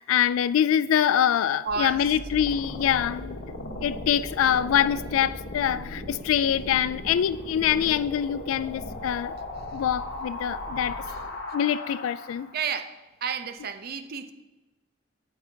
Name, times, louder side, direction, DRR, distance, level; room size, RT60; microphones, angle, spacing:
voice 1, 0.0-3.4 3.8-9.3 9.7-11.0 11.5-12.5, left 9 dB, 85° left, 0.3 m, -24 dB
voice 2, 1.6-2.2 11.1-11.3 12.5-14.3, right 6 dB, 50° right, 0.5 m, -32 dB
sound 1, 1.7-12.6, left 1 dB, 60° left, 1.2 m, -37 dB
9.2 x 7.5 x 2.8 m
head